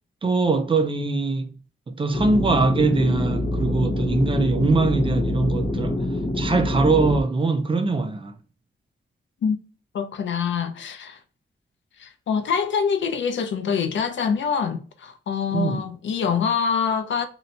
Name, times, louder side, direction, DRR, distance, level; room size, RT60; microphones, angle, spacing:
voice 1, 0.2-1.5 1.9-6.0 6.4-8.3 15.5-15.8, right 3 dB, 30° right, 0.4 m, -22 dB
sound 1, 2.1-7.2, left 1 dB, 30° left, 0.6 m, -25 dB
voice 2, 9.9-11.2 12.0-17.3, left 6 dB, 75° left, 0.5 m, -25 dB
2.8 x 2.2 x 3.9 m
wide cardioid pair, 160°, 19 cm